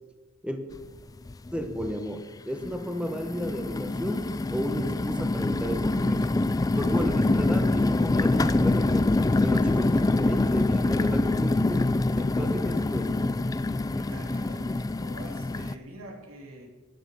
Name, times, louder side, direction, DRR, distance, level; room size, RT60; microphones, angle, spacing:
sound 1, 0.7-0.8 1.3-1.9 2.6-15.7, left 2 dB, 15° left, 0.3 m, -25 dB
voice 1, 1.5-6.3 6.7-13.2, equal, 5° right, 5 dB, 1.0 m, -33 dB
voice 2, 14.0-16.7, right 1 dB, 90° right, 1 dB, 3.2 m, -45 dB
11.5 x 10.0 x 6.7 m, 1.3 s
head